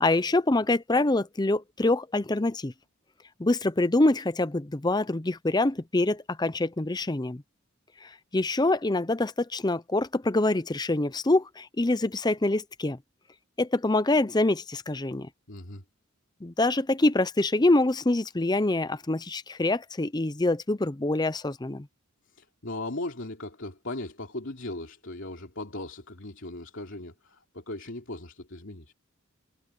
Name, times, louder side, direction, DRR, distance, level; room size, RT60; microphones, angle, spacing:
voice 1, 0.0-2.7 3.4-7.4 8.0-13.0 13.6-15.3 16.4-21.9, left 2 dB, 20° left, 0.6 m, -25 dB
voice 2, 15.5-15.8 22.4-28.9, left 2 dB, 60° left, 3.1 m, -38 dB
head